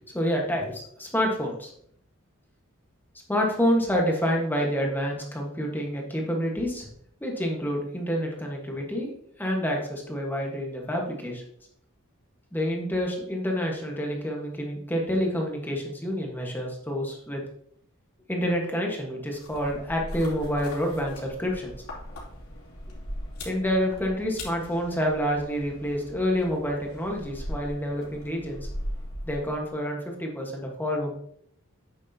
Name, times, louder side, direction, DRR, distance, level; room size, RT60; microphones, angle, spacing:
voice 1, 0.1-1.7 3.3-6.9 7.2-9.1 9.4-11.4 12.5-17.4 18.3-21.8 23.4-28.7 29.2-31.1, equal, 10° left, 0 dB, 1.4 m, -28 dB
sound 1, 19.3-29.7, equal, 75° left, 2.8 m, -39 dB
8.7 x 6.4 x 2.8 m, 0.67 s
head